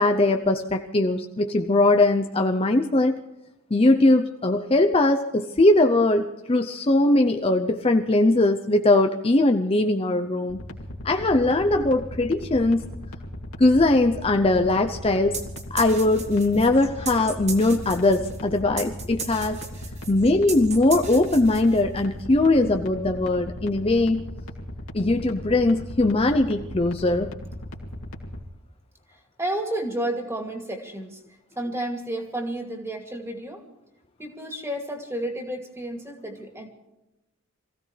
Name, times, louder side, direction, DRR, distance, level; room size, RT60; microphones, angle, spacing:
voice 1, 0.0-3.2 3.7-10.6 11.0-12.9 13.6-15.4 15.7-19.6 20.1-24.2 24.9-27.3, left 2 dB, 25° left, 6 dB, 0.6 m, -20 dB
sound 1, 10.5-28.4, left 1 dB, 75° left, 2.5 m, -37 dB
sound 2, 15.3-22.0, right 5 dB, 30° right, 2.0 m, -36 dB
voice 2, 29.4-31.2 31.6-33.6 34.2-36.7, right 1 dB, 15° right, 3 dB, 2.5 m, -31 dB
26.5 x 16.0 x 3.3 m, 0.98 s
head